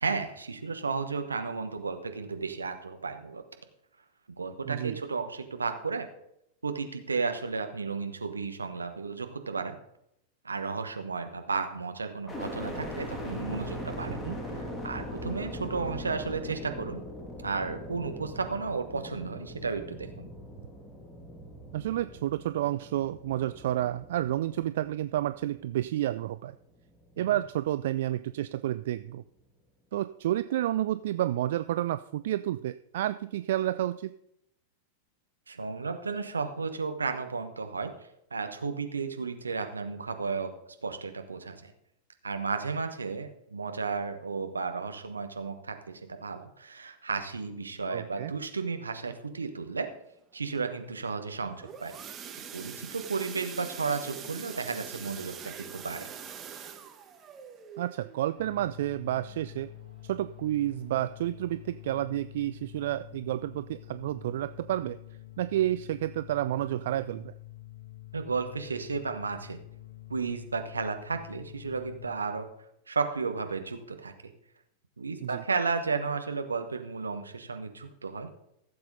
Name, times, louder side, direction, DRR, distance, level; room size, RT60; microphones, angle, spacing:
voice 1, 0.0-3.4 4.4-6.1 6.6-9.8 10.4-14.2 14.5-17.0 17.4-20.3 27.2-27.3 35.5-37.9 38.3-40.5 40.8-41.7 42.2-49.9 50.3-51.9 52.5-56.1 68.1-69.6 70.1-72.5 72.9-74.3 75.0-78.3, right 4 dB, 80° right, 6 dB, 1.2 m, -33 dB
voice 2, 4.7-5.0 14.1-14.4 21.7-26.5 27.2-29.2 29.9-34.1 47.9-48.3 57.8-59.7 60.0-65.0 65.4-67.3 75.2-75.4, right 13 dB, 60° right, 13 dB, 0.3 m, -30 dB
sound 1, 12.3-26.3 26.8-27.5, equal, 5° left, 2.3 m, -41 dB
sound 2, 51.3-60.0 60.4-60.7 61.0-61.1 61.6-61.7, right 8 dB, 25° right, 1.1 m, -44 dB
sound 3, 58.4-72.2, left 15 dB, 65° left, 0.8 m, -48 dB
15.5 x 7.6 x 4.0 m, 0.79 s
figure-of-eight pair, 95°, 0 cm